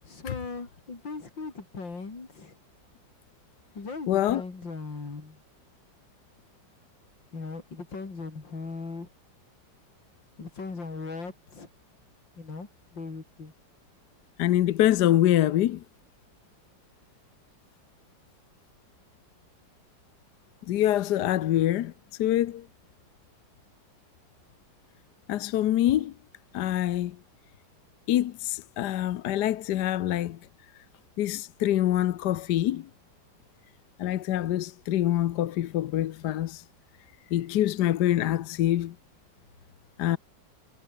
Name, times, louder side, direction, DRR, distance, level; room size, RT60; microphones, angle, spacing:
voice 1, 0.0-2.6 3.7-5.4 7.3-9.1 10.4-11.7 12.4-13.5, left 4 dB, 90° left, 4.8 m, -39 dB
voice 2, 4.1-4.4 14.4-15.8 20.6-21.9 22.2-22.7 25.3-26.1 26.5-27.2 28.1-30.4 31.2-32.9 34.0-36.6 37.3-39.0 40.0-40.2, left 13 dB, 70° left, 1.3 m, -25 dB
omnidirectional pair, 2.0 m